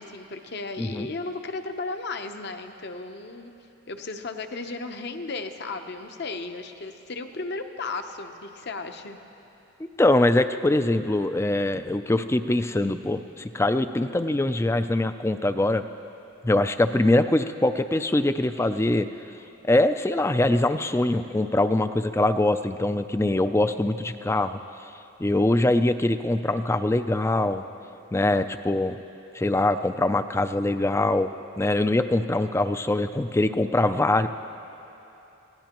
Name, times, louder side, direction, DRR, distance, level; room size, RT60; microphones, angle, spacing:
voice 1, 0.0-3.5 3.9-9.2, left 3 dB, 50° left, 6 dB, 0.8 m, -35 dB
voice 2, 0.8-1.1 10.0-15.8 16.4-19.1 19.7-24.6 25.2-27.6 28.1-29.0 29.3-31.3 31.6-34.3, left 2 dB, 10° left, 10 dB, 0.3 m, -23 dB
26.5 x 17.0 x 3.0 m, 3.0 s
head